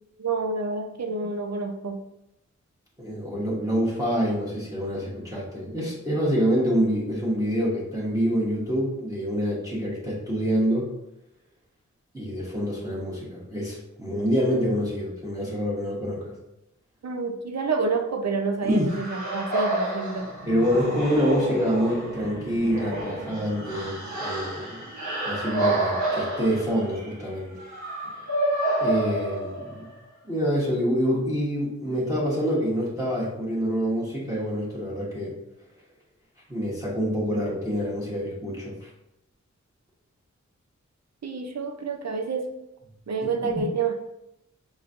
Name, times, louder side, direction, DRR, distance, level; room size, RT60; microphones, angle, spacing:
voice 1, 0.2-2.0 17.0-20.3 41.2-42.5 43.1-44.0, right 4 dB, 60° right, 4 dB, 0.6 m, -28 dB
voice 2, 3.0-10.9 12.1-16.3 18.6-18.9 20.5-24.8 25.2-27.6 28.8-29.9 30.2-35.3 36.5-38.9, equal, 10° right, -7 dB, 1.1 m, -26 dB
sound 1, 18.9-29.9, right 1 dB, 75° right, 1.3 m, -29 dB
5.0 x 3.1 x 2.5 m, 0.85 s
wide cardioid pair, 80°, 30 cm